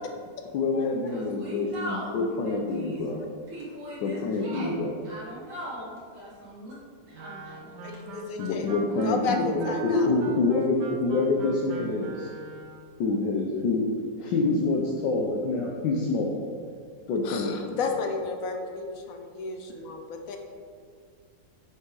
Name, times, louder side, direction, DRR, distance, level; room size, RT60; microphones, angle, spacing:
voice 1, 0.5-3.2 4.0-4.9 8.4-12.3 13.0-13.9 14.2-16.5 17.1-17.8, left 3 dB, 75° left, 0 dB, 1.4 m, -26 dB
voice 2, 1.1-2.2 2.4-3.1 3.5-4.7 5.0-8.0, equal, 85° right, -8 dB, 3.0 m, -40 dB
Wind instrument woodwind instrument, 7.1-12.9, right 4 dB, 70° right, 1.4 m, -39 dB
voice 3, 7.8-8.7 9.0-10.1 17.2-20.4, left 4 dB, 60° left, 4 dB, 1.1 m, -33 dB
9.2 x 5.5 x 3.8 m, 2.2 s
omnidirectional pair, 2.0 m